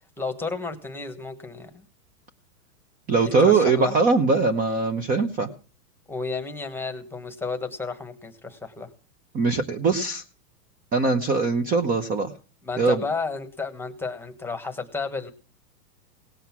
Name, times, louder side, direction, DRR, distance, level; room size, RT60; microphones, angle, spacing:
voice 1, 0.2-1.8 3.2-3.9 6.1-8.9 12.6-15.3, left 4 dB, 5° left, 6 dB, 1.2 m, -32 dB
voice 2, 3.1-5.5 9.3-10.2 10.9-12.3 12.8-13.0, right 4 dB, 20° right, 10 dB, 0.8 m, -21 dB
18.0 x 7.9 x 6.0 m, 0.38 s
supercardioid pair, 140°, 47 cm